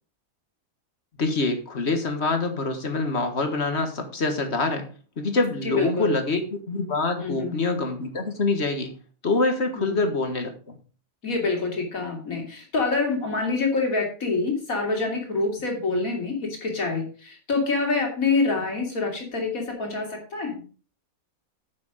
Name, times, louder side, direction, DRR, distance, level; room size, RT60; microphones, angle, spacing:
voice 1, 1.2-4.9 5.2-8.9 9.2-10.8, left 3 dB, 50° left, 7 dB, 1.8 m, -25 dB
voice 2, 5.6-6.2 7.2-7.6 9.8-10.0 11.2-20.6, left 3 dB, 80° left, 1 dB, 3.4 m, -26 dB
10.0 x 6.9 x 5.0 m, 0.38 s
omnidirectional pair, 1.4 m